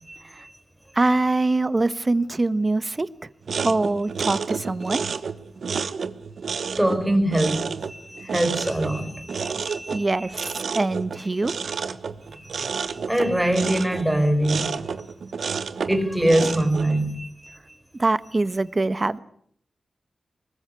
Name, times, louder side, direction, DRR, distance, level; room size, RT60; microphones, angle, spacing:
voice 1, 0.1-0.5 6.8-10.4 11.2-11.3 12.3-15.0 15.9-17.6, right 1 dB, 5° right, 5.1 m, -24 dB
voice 2, 0.9-3.1 3.6-5.0 9.9-11.5 18.0-19.2, right 2 dB, 30° right, 1.1 m, -23 dB
sound 1, 3.4-17.0, right 5 dB, 75° right, 1.4 m, -30 dB
25.5 x 21.0 x 8.2 m
wide cardioid pair, 135°, 0 cm